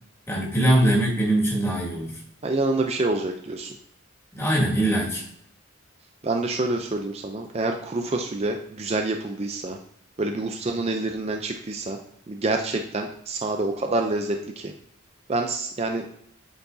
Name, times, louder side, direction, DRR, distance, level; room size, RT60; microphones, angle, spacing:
voice 1, 0.3-2.2 4.3-5.2, right 1 dB, 15° left, -6 dB, 1.9 m, -22 dB
voice 2, 2.4-3.8 6.2-9.8 10.2-12.0 12.3-14.7 15.3-16.1, right 2 dB, 30° right, 3 dB, 0.5 m, -27 dB
8.7 x 4.6 x 2.7 m, 0.71 s
head